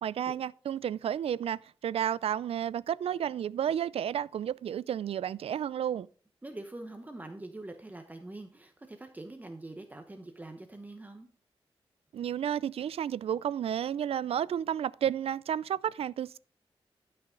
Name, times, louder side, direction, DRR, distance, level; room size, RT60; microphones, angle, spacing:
voice 1, 0.0-6.1 12.1-16.4, right 9 dB, 85° right, 0.4 m, -32 dB
voice 2, 6.4-11.3, right 2 dB, 15° right, 0.9 m, -44 dB
12.5 x 5.7 x 3.8 m
wide cardioid pair, 105°, 10 cm